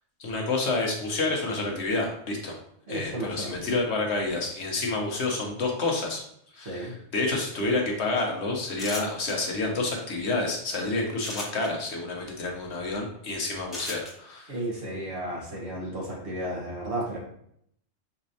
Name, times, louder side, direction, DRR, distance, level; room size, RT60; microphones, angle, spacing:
voice 1, 0.2-2.6 2.9-6.2 6.5-14.5, left 3 dB, 70° left, 0 dB, 1.2 m, -29 dB
voice 2, 2.9-3.7 6.6-6.9 14.5-17.2, right 1 dB, 70° right, -3 dB, 1.6 m, -33 dB
sound 1, 8.8-9.3 11.2-11.7 13.7-14.1, left 2 dB, ahead, 1.4 m, -35 dB
5.9 x 3.2 x 2.7 m, 0.69 s
omnidirectional pair, 1.2 m